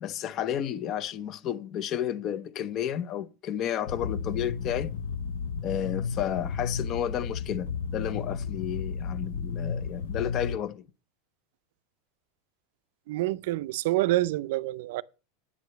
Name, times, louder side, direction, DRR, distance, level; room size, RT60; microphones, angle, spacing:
voice 1, 0.0-4.9 5.6-10.8, left 10 dB, 30° left, 0.5 m, -32 dB
sound 1, 3.9-10.6, left 6 dB, 85° left, 0.7 m, -33 dB
voice 2, 13.1-15.0, right 16 dB, 65° right, 0.4 m, -27 dB
8.6 x 4.9 x 6.7 m
supercardioid pair, 165°, 0 cm